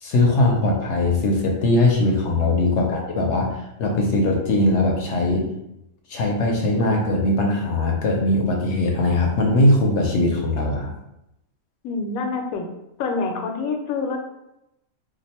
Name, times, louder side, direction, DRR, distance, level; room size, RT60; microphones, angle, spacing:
voice 1, 0.0-5.5 6.1-10.9, left 2 dB, 65° left, 1 dB, 0.8 m, -20 dB
voice 2, 11.8-12.7 13.0-14.2, left 4 dB, 85° left, 3 dB, 1.1 m, -27 dB
2.5 x 2.4 x 4.1 m, 0.86 s
omnidirectional pair, 1.4 m